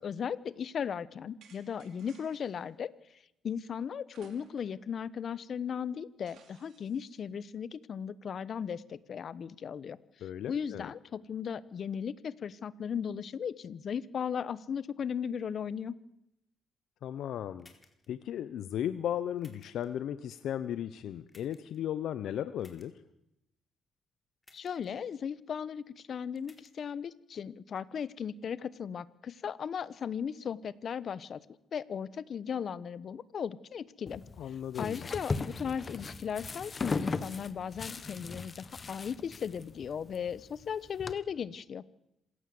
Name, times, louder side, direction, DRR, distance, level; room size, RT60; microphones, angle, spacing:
voice 1, 0.0-2.9 3.4-16.0 24.5-31.4 31.7-34.2 34.5-41.8, left 7 dB, 55° left, 18 dB, 1.1 m, -37 dB
sound 1, 1.4-2.6 4.1-4.8 5.2-5.3 6.3-7.1, right 6 dB, 75° right, 4.5 m, -59 dB
voice 2, 10.2-10.9 17.0-17.7 18.1-22.9 34.4-35.1, left 10 dB, 75° left, 13 dB, 0.9 m, -36 dB
sound 2, 17.6-18.1 19.4-19.9 21.3-21.8 22.6-22.9 24.4-24.9 26.4-26.7, left 2 dB, 20° left, 4.4 m, -60 dB
sound 3, 34.1-41.1, left 4 dB, 35° left, 1.4 m, -38 dB
26.5 x 16.5 x 7.8 m, 0.86 s
cardioid pair, 90°, 0 cm